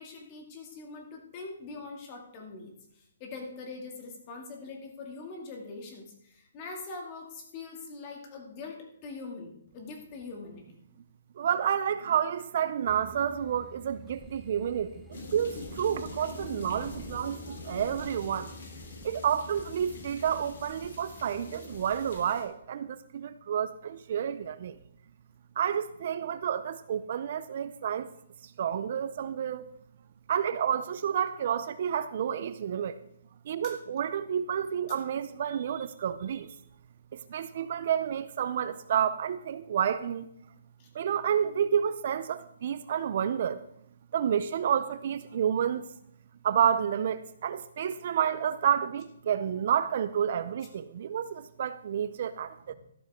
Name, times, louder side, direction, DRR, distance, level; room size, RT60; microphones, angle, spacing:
voice 1, 0.0-10.8 33.6-33.7 40.8-40.9, left 3 dB, 25° left, 2.4 m, -43 dB
voice 2, 11.4-18.5 19.0-24.8 25.6-28.1 28.4-29.7 30.3-33.0 33.5-36.5 37.1-40.3 40.9-43.6 44.1-45.8 46.4-52.7, right 8 dB, 45° right, 0.5 m, -30 dB
sound 1, 12.9-22.3, equal, ahead, 0.9 m, -49 dB
sound 2, 15.1-22.4, left 2 dB, 60° left, 4.1 m, -45 dB
13.5 x 12.0 x 3.7 m
hypercardioid pair, 165°, 0 cm